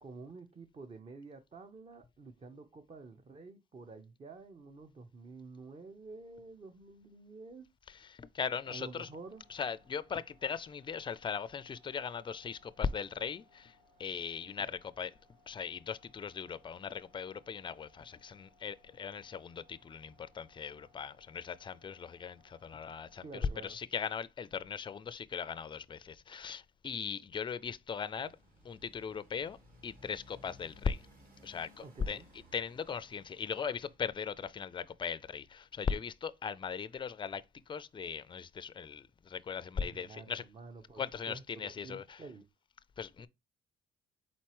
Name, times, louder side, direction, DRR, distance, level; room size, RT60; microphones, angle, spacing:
voice 1, 0.0-7.7 8.7-9.4 23.2-23.8 31.8-32.3 39.8-42.4, right 3 dB, 30° right, 0.7 m, -50 dB
voice 2, 7.9-9.1 9.5-15.1 15.5-28.4 28.6-29.6 29.8-31.1 31.4-32.2 32.5-40.4 41.0-42.2 43.0-43.3, left 6 dB, 25° left, 0.4 m, -39 dB
sound 1, 9.0-23.4, left 2 dB, 75° right, 2.9 m, -68 dB
Motorcycle, 28.0-34.0, left 1 dB, 45° right, 2.0 m, -60 dB
4.4 x 4.0 x 2.9 m
cardioid pair, 90°, 20 cm